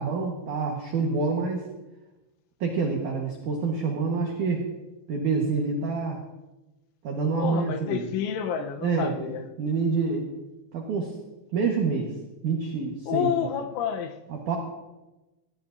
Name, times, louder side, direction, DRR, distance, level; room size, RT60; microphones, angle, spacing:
voice 1, 0.0-1.6 2.6-4.6 5.1-6.2 7.0-8.1 8.8-9.3 9.6-10.3 10.7-11.1 11.5-12.1 12.4-13.3 14.3-14.6, right 4 dB, 90° right, 0 dB, 1.7 m, -27 dB
voice 2, 7.3-9.4 13.1-14.1, left 8 dB, 80° left, 6 dB, 3.1 m, -29 dB
16.0 x 15.5 x 2.6 m, 1.0 s
omnidirectional pair, 5.7 m